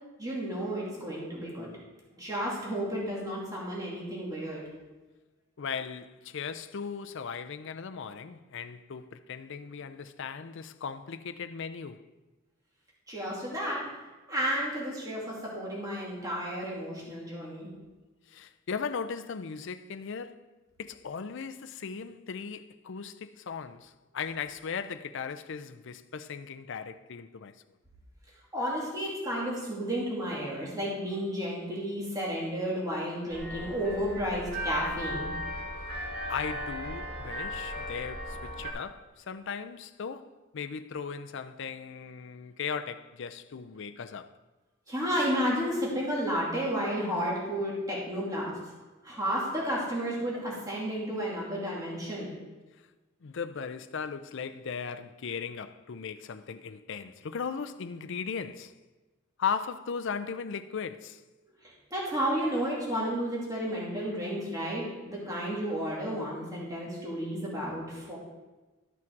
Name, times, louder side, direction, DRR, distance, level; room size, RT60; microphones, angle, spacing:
voice 1, 0.2-1.7 2.2-4.6 13.1-13.9 14.3-17.7 28.5-35.3 44.9-48.6 49.0-52.3 61.6-68.2, equal, 20° right, 2.6 m, -32 dB
voice 2, 5.6-12.1 18.3-20.4 20.8-27.5 36.3-44.3 53.2-58.7 59.4-61.2, left 6 dB, 65° left, 0.5 m, -37 dB
sound 1, 33.3-38.7, left 1 dB, 50° right, 2.1 m, -37 dB
13.0 x 6.1 x 4.6 m
head